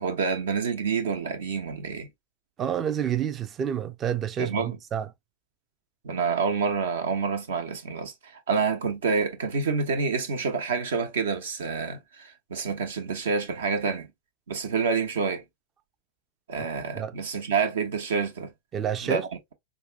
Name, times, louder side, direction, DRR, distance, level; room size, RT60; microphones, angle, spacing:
voice 1, 0.0-2.1 4.4-4.8 6.0-14.1 14.5-15.4 16.5-18.5 19.0-19.2, right 5 dB, 60° right, 0.9 m, -28 dB
voice 2, 2.6-5.1 16.6-16.7 16.9-17.1 18.7-19.2, right 9 dB, 25° right, 0.5 m, -29 dB
5.4 x 2.3 x 2.5 m
figure-of-eight pair, 90°, 0 cm